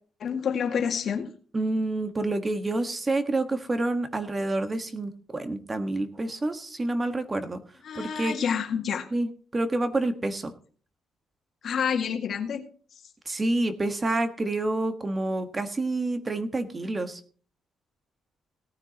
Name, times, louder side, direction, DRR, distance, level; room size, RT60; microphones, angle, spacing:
voice 1, 0.2-1.3 7.8-9.1 11.6-12.7, left 7 dB, 60° left, 5 dB, 2.0 m, -28 dB
voice 2, 1.5-7.6 7.9-8.4 9.1-10.5 13.3-17.2, right 2 dB, 25° right, 9 dB, 1.5 m, -28 dB
18.0 x 9.8 x 3.0 m, 0.42 s
cardioid pair, 90°, 0 cm